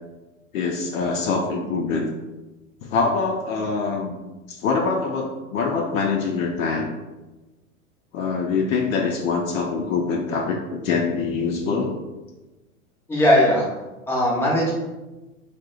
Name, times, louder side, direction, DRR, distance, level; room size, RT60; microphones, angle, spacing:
voice 1, 0.5-2.1 2.8-4.2 4.5-6.9 8.1-11.9, left 4 dB, 65° left, 0 dB, 0.5 m, -24 dB
voice 2, 13.1-13.6 14.1-14.7, left 1 dB, 5° left, -5 dB, 0.4 m, -18 dB
2.7 x 2.1 x 3.7 m, 1.1 s
figure-of-eight pair, 100°, 44 cm